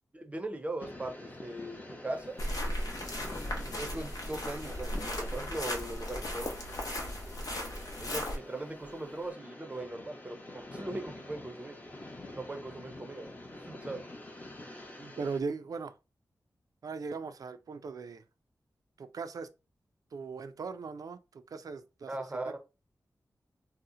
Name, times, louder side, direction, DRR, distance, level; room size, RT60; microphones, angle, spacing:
voice 1, 0.1-2.4 3.6-6.6 8.0-11.8 12.3-13.3 13.7-14.1 22.1-22.6, right 2 dB, 20° right, 0.6 m, -39 dB
sound 1, 0.8-15.4, left 1 dB, 25° left, 0.7 m, -47 dB
sound 2, 2.1-9.3, left 1 dB, 90° left, 0.9 m, -54 dB
sound 3, 2.4-8.4, left 1 dB, 65° left, 0.8 m, -36 dB
voice 2, 15.0-16.0 16.8-18.2 19.0-19.5 20.1-22.6, right 4 dB, 65° right, 0.4 m, -39 dB
2.7 x 2.0 x 3.6 m
wide cardioid pair, 115°, 7 cm